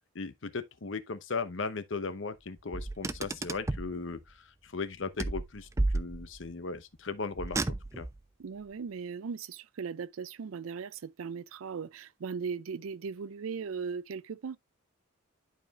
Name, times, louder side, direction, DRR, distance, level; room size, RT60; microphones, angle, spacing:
voice 1, 0.1-7.6 8.0-8.1, left 4 dB, 60° left, 0.8 m, -37 dB
Car, 2.7-4.0 5.2-6.5 7.4-8.2, right 2 dB, 15° right, 0.3 m, -32 dB
voice 2, 8.4-14.6, right 5 dB, 75° right, 0.4 m, -38 dB
11.0 x 4.9 x 2.3 m
head